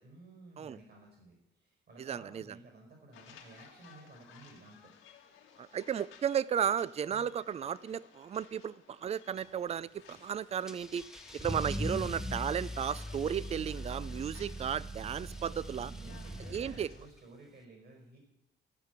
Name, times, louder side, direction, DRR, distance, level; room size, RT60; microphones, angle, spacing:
voice 1, 0.0-4.9 7.1-7.3 15.8-18.2, right 2 dB, 55° right, 1 dB, 5.2 m, -54 dB
voice 2, 2.0-2.4 5.6-11.1 11.3-15.9 16.5-16.9, right 8 dB, 30° right, 19 dB, 0.4 m, -34 dB
sound 1, 3.1-17.1, left 8 dB, 85° left, 2.0 m, -58 dB
Car / Engine starting / Accelerating revving vroom, 10.7-17.2, equal, ahead, 0.8 m, -40 dB
15.0 x 5.9 x 8.3 m, 0.84 s
cardioid pair, 90°, 20 cm